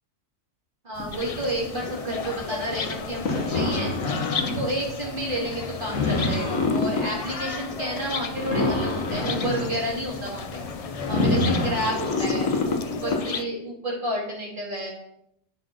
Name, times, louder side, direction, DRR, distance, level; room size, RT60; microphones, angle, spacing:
voice 1, 0.8-3.9 4.5-10.6 11.1-14.9, right 1 dB, 40° right, -3 dB, 2.4 m, -31 dB
sound 1, 1.0-13.2, left 2 dB, 85° left, 1.7 m, -28 dB
sound 2, 1.1-13.4, left 6 dB, 60° left, 0.4 m, -35 dB
10.5 x 4.4 x 4.4 m, 0.77 s
omnidirectional pair, 1.3 m